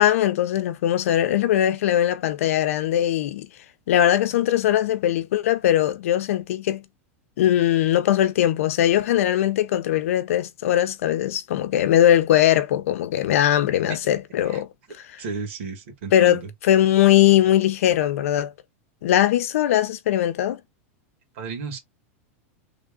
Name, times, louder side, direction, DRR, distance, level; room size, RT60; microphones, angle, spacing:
voice 1, 0.0-3.5 3.9-6.8 7.4-14.7 15.1-15.2 16.1-18.5 19.0-20.6, left 12 dB, 80° left, 0.6 m, -20 dB
voice 2, 13.5-14.0 14.5-14.6 15.2-16.5 21.4-21.8, right 5 dB, 60° right, 1.9 m, -34 dB
3.3 x 2.4 x 3.6 m
supercardioid pair, 160°, 7 cm